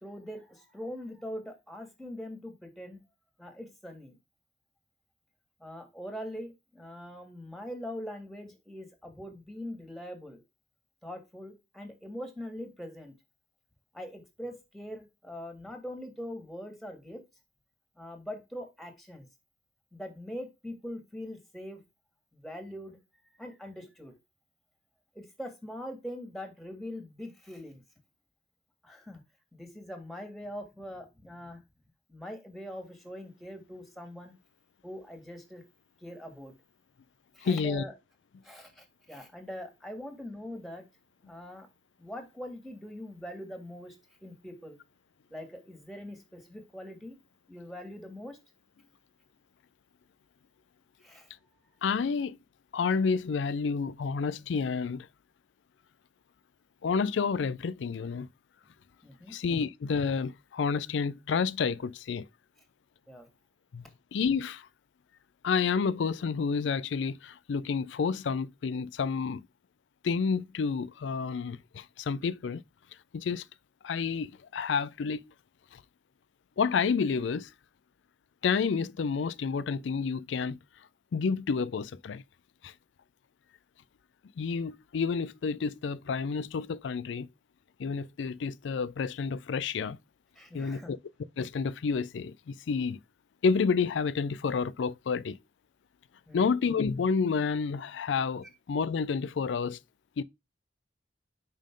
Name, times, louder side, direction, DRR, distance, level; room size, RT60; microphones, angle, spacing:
voice 1, 0.0-3.0 3.4-4.1 5.6-10.4 11.0-13.1 13.9-17.2 18.0-19.3 19.9-21.8 22.3-23.0 23.4-24.1 25.2-27.8 28.8-29.2 29.5-31.6 32.1-34.3 34.8-35.6 36.0-36.5 37.4-37.9 38.4-40.8 41.3-41.7 42.0-44.0 44.2-44.8 45.3-47.2 47.5-48.4 51.0-51.3 59.0-59.3 63.1-63.3 90.4-90.9 96.3-96.5, equal, ahead, 1.7 m, -42 dB
voice 2, 37.4-37.8 51.8-52.4 52.7-55.1 56.8-58.3 59.3-62.3 63.7-63.9 64.1-64.7 65.4-69.4 70.0-72.6 73.1-73.4 73.8-75.2 75.7-75.8 76.6-77.5 78.4-80.6 81.1-82.2 82.6-82.7 84.4-87.3 87.8-90.0 90.5-91.0 91.4-93.0 93.4-95.4 96.3-99.8 100.2-100.3, left 5 dB, 80° left, 0.4 m, -29 dB
5.2 x 5.2 x 3.6 m
head